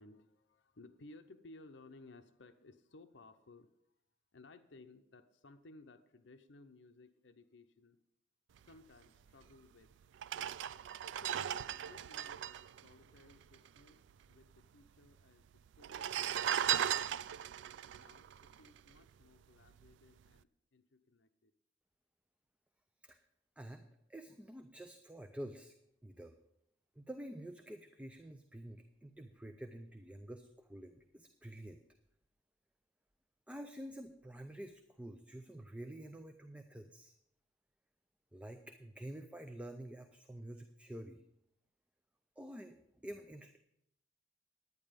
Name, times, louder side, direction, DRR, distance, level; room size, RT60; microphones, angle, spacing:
voice 1, 0.0-3.7 4.3-8.0 8.6-9.9 11.0-14.0 14.3-15.5 15.8-17.1 17.9-21.5, left 2 dB, 70° left, 8 dB, 0.7 m, -59 dB
sound 1, 9.5-9.6 10.1-13.8 14.1-14.2 14.4-15.1 15.7-19.2 19.7-19.9, right 10 dB, 70° right, 0.3 m, -37 dB
voice 2, 24.1-25.7 26.0-26.3 27.0-31.8 33.5-37.1 38.3-41.2 42.4-42.8 43.0-43.6, right 1 dB, 5° right, 6 dB, 0.5 m, -48 dB
11.0 x 9.5 x 5.1 m, 0.79 s
head